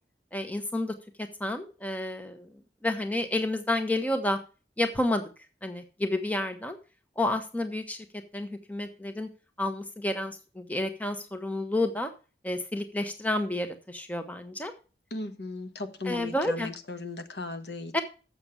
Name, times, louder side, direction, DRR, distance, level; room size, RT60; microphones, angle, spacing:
voice 1, 0.3-2.5 2.8-4.4 4.8-5.2 5.6-6.8 7.2-8.1 8.3-9.3 9.6-12.1 12.4-14.7 16.1-16.7 17.9-18.0, left 1 dB, 10° left, 7 dB, 0.9 m, -30 dB
voice 2, 15.1-18.0, left 3 dB, 75° left, 9 dB, 1.2 m, -37 dB
7.2 x 6.9 x 7.0 m, 0.34 s
head